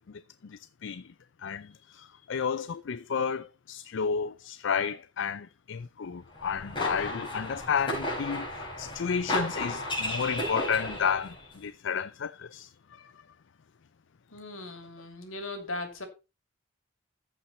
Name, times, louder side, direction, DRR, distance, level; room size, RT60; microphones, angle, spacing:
voice 1, 0.4-1.1 1.4-12.7 13.0-13.1, left 6 dB, 65° left, 0.5 m, -32 dB
sound 1, 6.3-11.4, left 1 dB, 25° left, 4.6 m, -34 dB
voice 2, 14.3-16.1, left 2 dB, 80° left, 3.0 m, -38 dB
14.0 x 5.8 x 4.3 m
head